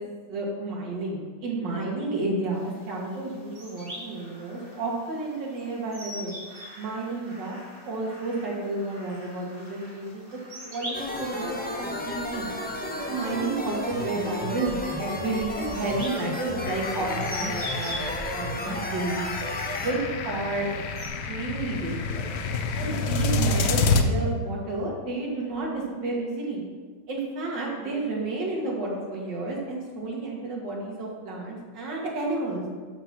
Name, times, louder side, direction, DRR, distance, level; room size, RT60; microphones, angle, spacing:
voice 1, 0.0-6.4 6.8-7.6 7.9-12.5 13.1-19.2 19.8-20.0 20.2-20.7 21.3-22.3 22.7-26.6 27.1-32.6, right 2 dB, 65° right, -3 dB, 2.4 m, -31 dB
sound 1, 2.5-21.1, equal, 30° right, 2.1 m, -44 dB
sound 2, 10.9-19.9, left 1 dB, 10° left, 0.5 m, -33 dB
sound 3, 16.6-24.0, left 4 dB, 65° left, 1.2 m, -28 dB
12.0 x 4.4 x 6.1 m, 1.5 s
omnidirectional pair, 2.2 m